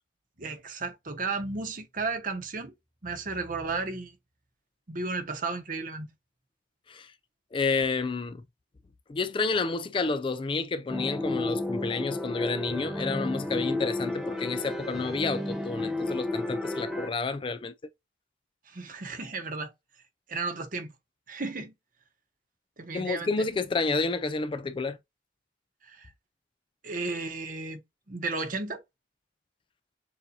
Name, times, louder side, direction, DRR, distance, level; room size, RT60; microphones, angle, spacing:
voice 1, 0.4-2.7 3.0-4.2 4.9-6.1 18.7-19.7 20.3-20.9 21.3-21.7 22.8-23.5 25.8-26.1 26.8-27.8 28.1-28.8, right 3 dB, 50° right, 1.1 m, -34 dB
voice 2, 7.5-8.4 9.1-17.7 22.9-25.0, left 4 dB, 30° left, 0.3 m, -30 dB
sound 1, 10.9-17.1, left 2 dB, 5° right, 0.7 m, -32 dB
7.1 x 2.6 x 2.7 m
head